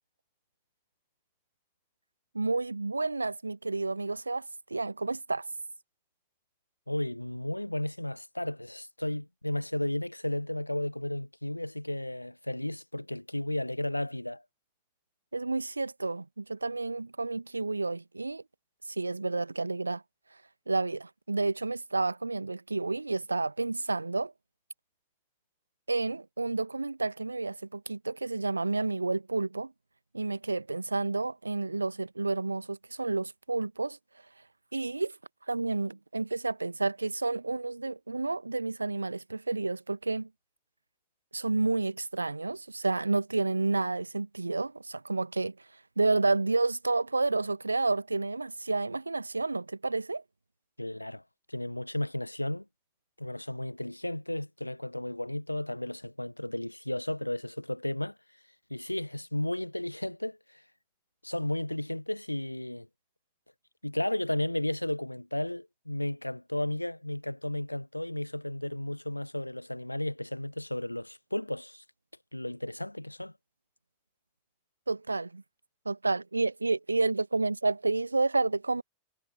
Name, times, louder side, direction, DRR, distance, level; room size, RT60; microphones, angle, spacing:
voice 1, 2.3-5.5 15.3-18.4 18.9-20.0 20.7-24.3 25.9-29.7 30.1-34.0 34.7-35.2 35.5-40.3 41.3-50.2 74.9-75.4 75.8-78.8, right 3 dB, 80° right, 1.5 m, -30 dB
voice 2, 6.9-14.4 50.8-51.2 51.5-52.6 53.2-58.2 58.7-60.6 61.2-62.9 63.8-71.8 72.3-73.3, left 1 dB, 85° left, 1.1 m, -33 dB
figure-of-eight pair, 90°, 0 cm